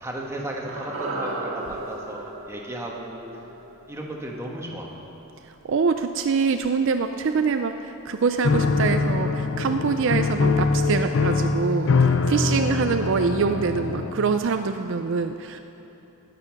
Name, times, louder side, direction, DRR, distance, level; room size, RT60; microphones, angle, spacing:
voice 1, 0.0-3.3 3.9-5.0, right 1 dB, 15° right, -1 dB, 1.3 m, -34 dB
sound 1, 0.7-5.0 5.3-5.4, right 2 dB, 80° right, 2.0 m, -35 dB
voice 2, 5.7-15.6, right 5 dB, 60° right, 7 dB, 0.4 m, -24 dB
Piano, 8.4-14.4, left 4 dB, 60° left, 0.5 m, -23 dB
18.5 x 6.9 x 5.9 m, 2.9 s
head